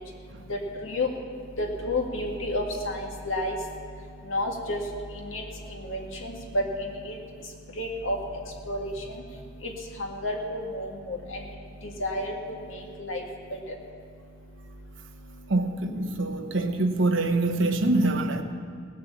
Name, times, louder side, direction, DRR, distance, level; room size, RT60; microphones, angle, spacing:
voice 1, 1.6-3.0 3.3-3.6 4.3-4.8 5.3-5.4 5.9-6.3 7.8-8.2 8.7-8.9 10.2-11.2 12.0-12.3 13.0-13.2, left 2 dB, 75° left, 0 dB, 2.0 m, -29 dB
voice 2, 15.5-18.4, right 2 dB, 70° right, 6 dB, 1.0 m, -25 dB
18.5 x 6.7 x 7.2 m, 2.2 s
head